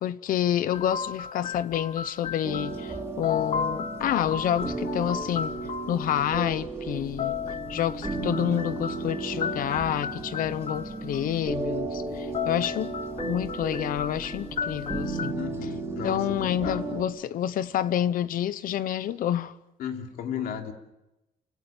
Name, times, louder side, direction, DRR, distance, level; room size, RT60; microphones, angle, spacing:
voice 1, 0.0-5.6 5.9-7.4 7.7-12.9 13.2-15.4 16.0-19.5, left 10 dB, 70° left, 0.9 m, -28 dB
sound 1, 0.7-3.0 3.2-5.9 7.0-11.2 12.1-15.3, left 7 dB, 45° left, 0.9 m, -34 dB
sound 2, 2.4-17.0, right 3 dB, 15° right, 4.2 m, -34 dB
voice 2, 15.3-16.8 19.8-20.7, left 8 dB, 85° left, 3.1 m, -35 dB
29.5 x 17.0 x 8.8 m
cardioid pair, 160°, 15 cm